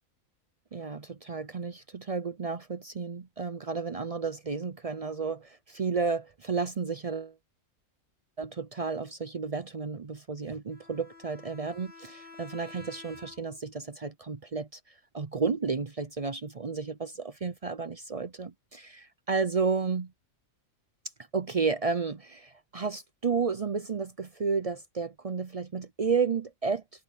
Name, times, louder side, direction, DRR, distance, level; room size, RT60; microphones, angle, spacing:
voice 1, 0.7-7.3 8.4-14.8 15.1-20.1 21.3-26.8, right 5 dB, 45° right, 0.4 m, -32 dB
Bowed string instrument, 10.7-13.7, left 3 dB, 40° left, 3.1 m, -50 dB
omnidirectional pair, 1.4 m